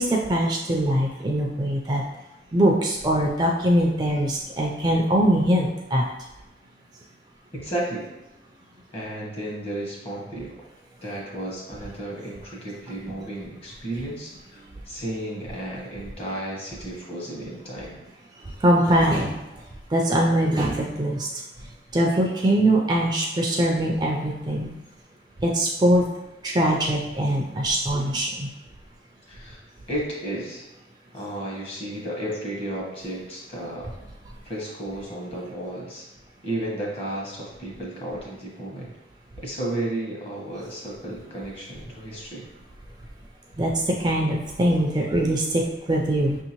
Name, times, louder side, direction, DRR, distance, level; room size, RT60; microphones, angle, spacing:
voice 1, 0.0-2.0 2.5-6.1 18.6-19.4 19.9-21.3 21.9-24.7 25.4-26.1 26.4-28.5 43.6-43.7 44.0-46.4, right 1 dB, 25° right, -1 dB, 0.3 m, -22 dB
voice 2, 7.5-8.1 8.9-10.5 11.0-18.0 29.3-29.6 29.9-30.7 31.1-33.9 34.4-36.0 36.4-38.9 39.4-42.5, right 1 dB, 35° left, -3 dB, 1.1 m, -33 dB
5.8 x 2.7 x 2.9 m, 0.97 s
head